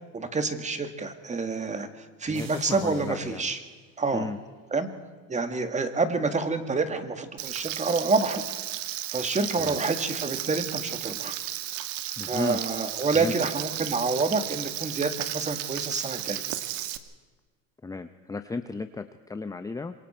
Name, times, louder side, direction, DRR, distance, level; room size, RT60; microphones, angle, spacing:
voice 1, 0.1-3.6 4.0-4.3 4.7-4.9 5.3-8.4 9.1-11.4 12.3-16.4, right 4 dB, 20° right, 8 dB, 2.2 m, -28 dB
voice 2, 2.3-3.5 4.1-4.4 9.6-9.8 12.2-12.6 13.1-13.3 17.8-19.9, left 3 dB, 10° left, 10 dB, 0.7 m, -34 dB
sound 1, 2.3-4.7, right 6 dB, 55° right, 4.2 m, -51 dB
Frying (food), 7.4-17.0, right 13 dB, 90° right, 1.6 m, -34 dB
26.5 x 23.0 x 4.5 m, 1.4 s
supercardioid pair, 115°, 38 cm